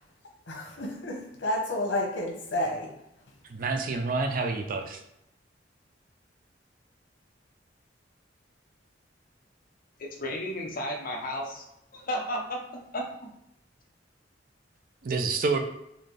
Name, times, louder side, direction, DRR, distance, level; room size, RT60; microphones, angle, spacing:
voice 1, 0.5-2.9, left 1 dB, 85° left, 0 dB, 1.0 m, -30 dB
voice 2, 3.5-5.0 15.0-15.6, right 3 dB, 50° right, 5 dB, 0.5 m, -28 dB
voice 3, 10.0-11.6 11.9-13.1, equal, 50° left, 1 dB, 0.8 m, -33 dB
4.1 x 2.7 x 3.3 m, 0.81 s
head